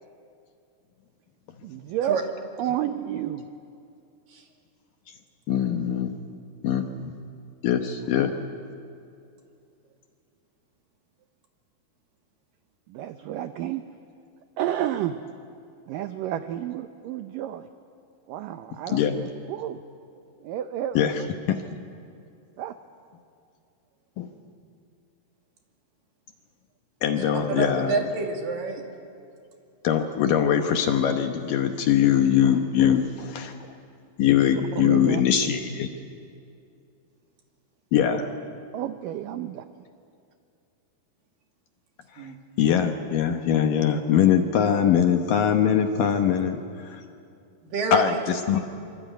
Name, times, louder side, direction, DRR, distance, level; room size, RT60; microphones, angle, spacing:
voice 1, 1.6-2.2 2.6-3.5 12.9-13.8 14.6-15.2 15.9-17.7 18.3-19.8 20.4-21.3 22.6-22.7 34.4-35.2 38.7-39.7, right 11 dB, 80° right, 9 dB, 2.0 m, -31 dB
voice 2, 5.5-6.1 6.6-6.9 7.6-8.3 18.9-19.3 21.0-21.2 21.5-21.6 24.2-24.3 27.0-28.0 29.8-33.5 34.2-35.9 37.9-38.3 42.2-42.3 42.6-47.0 47.9-48.6, left 9 dB, 70° left, 6 dB, 2.4 m, -22 dB
voice 3, 27.3-28.8 42.2-42.4 47.6-48.2, right 4 dB, 60° right, 2 dB, 3.9 m, -28 dB
25.5 x 24.5 x 9.2 m, 2.5 s
omnidirectional pair, 4.8 m